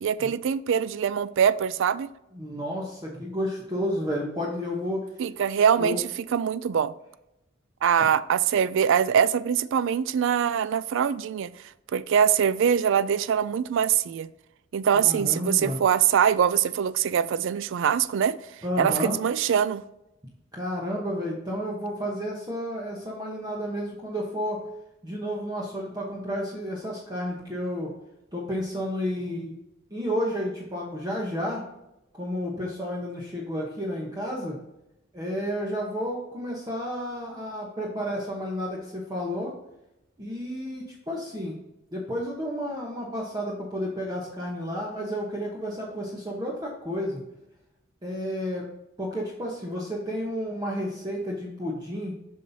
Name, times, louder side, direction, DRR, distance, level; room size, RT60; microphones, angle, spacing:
voice 1, 0.0-2.1 5.2-6.0 6.3-6.9 7.8-11.5 11.9-14.3 14.7-18.4 18.8-19.8, right 8 dB, 70° right, 0.3 m, -23 dB
voice 2, 2.3-5.1 5.8-6.0 14.9-15.8 18.6-19.2 20.5-24.6 25.0-27.9 28.3-29.6 29.9-31.6 32.1-34.6 35.1-39.5 40.2-41.6 41.9-47.2 48.0-48.7 49.0-52.2, equal, 20° right, 1.0 m, -31 dB
7.5 x 5.6 x 2.7 m
head